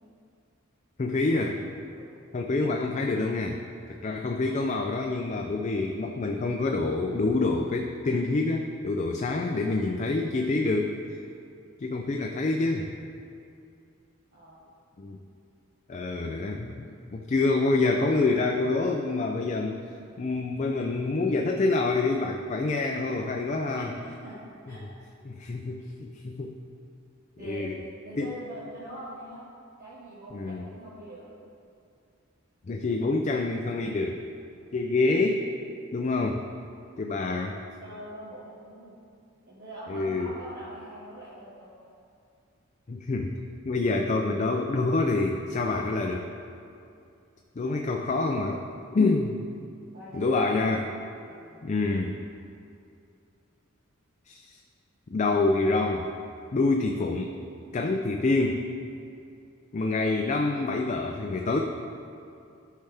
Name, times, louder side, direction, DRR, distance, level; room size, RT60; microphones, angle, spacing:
voice 1, 1.0-1.6 2.3-3.6 4.0-11.0 11.8-12.9 15.0-15.2 15.9-19.8 20.2-23.9 25.3-26.6 27.4-27.8 28.2-28.3 30.3-30.7 32.7-34.2 34.7-35.5 35.9-36.4 37.0-37.6 39.9-40.3 42.9-43.4 43.6-46.3 47.6-48.6 48.9-49.4 50.1-50.9 51.6-52.2 54.3-54.6 55.1-56.1 56.5-57.3 57.7-58.7 59.7-61.6, left 3 dB, 35° left, 2 dB, 0.4 m, -27 dB
voice 2, 1.9-2.2 14.3-14.6 23.6-24.4 24.6-24.9 25.4-25.5 27.4-27.6 28.0-29.5 29.8-31.3 34.6-34.8 37.8-38.9 39.5-41.9 47.6-47.8 49.9-50.7 51.3-51.6, right 1 dB, 45° right, -8 dB, 1.4 m, -43 dB
12.5 x 5.6 x 3.4 m, 2.5 s
head